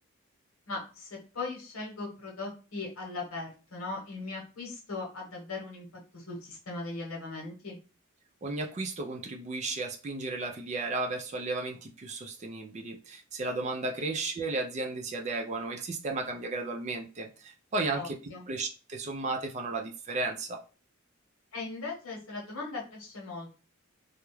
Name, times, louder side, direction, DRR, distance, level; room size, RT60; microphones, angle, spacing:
voice 1, 0.7-5.9 6.1-7.8 14.0-14.1 17.9-18.5 21.5-23.5, left 3 dB, 80° left, -1 dB, 1.0 m, -39 dB
voice 2, 8.4-18.2 18.5-20.6, right 3 dB, 35° right, 3 dB, 0.4 m, -34 dB
2.3 x 2.0 x 3.0 m, 0.35 s
head